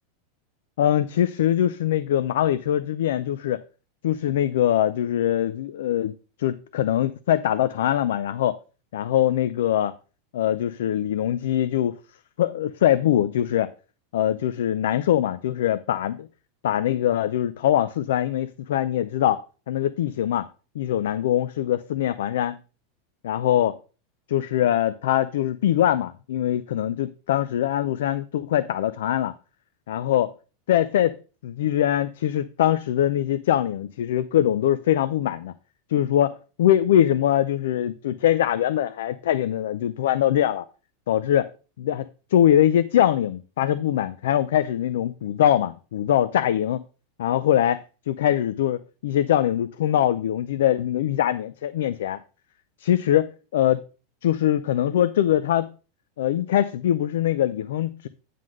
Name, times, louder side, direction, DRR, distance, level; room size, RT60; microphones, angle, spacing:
voice 1, 0.8-3.6 4.0-6.1 6.4-8.6 8.9-9.9 10.3-12.0 12.4-13.7 14.1-16.3 16.6-20.5 20.7-22.6 23.2-23.8 24.3-29.3 29.9-30.3 30.7-31.2 31.4-35.5 35.9-40.6 41.1-41.5 41.8-46.8 47.2-52.2 52.8-53.8 54.2-55.7 56.2-58.1, left 11 dB, 75° left, 0.5 m, -22 dB
9.2 x 3.8 x 6.3 m
supercardioid pair, 175°, 0 cm